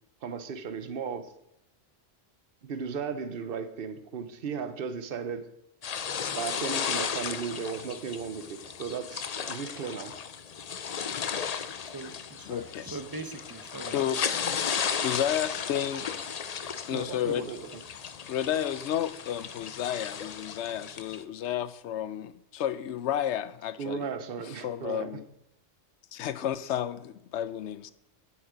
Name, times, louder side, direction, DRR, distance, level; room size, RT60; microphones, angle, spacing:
voice 1, 0.2-1.3 2.6-5.4 6.3-10.1 16.9-17.8 23.8-25.2, right 6 dB, 50° right, 1.0 m, -36 dB
sound 1, 5.8-21.2, left 7 dB, 50° left, 0.5 m, -35 dB
voice 2, 11.8-14.1, right 3 dB, 20° right, 0.8 m, -41 dB
voice 3, 12.4-13.0 13.9-14.3 15.0-16.1 16.9-17.6 18.3-24.0 24.6-25.3 26.1-27.9, left 10 dB, 70° left, 0.9 m, -31 dB
10.5 x 8.5 x 5.1 m
omnidirectional pair, 1.3 m